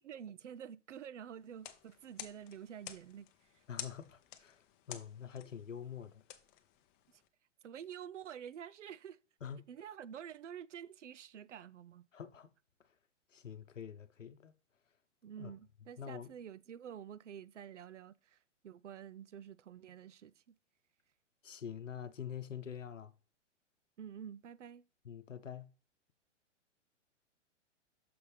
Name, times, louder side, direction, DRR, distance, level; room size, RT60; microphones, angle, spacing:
voice 1, 0.0-3.3 3.5-3.6 7.1-7.2 7.6-9.2 9.7-12.1 15.2-18.4 18.6-20.6 24.0-24.9, right 9 dB, 75° right, 0.5 m, -49 dB
sound 1, 1.5-7.3, left 11 dB, 25° left, 0.6 m, -51 dB
voice 2, 3.7-6.2 9.4-9.7 12.1-12.5 13.3-14.5 15.4-15.5 16.0-16.3 21.4-23.1 25.0-25.7, left 8 dB, 85° left, 0.8 m, -46 dB
6.8 x 5.3 x 3.3 m
figure-of-eight pair, 110°, 37 cm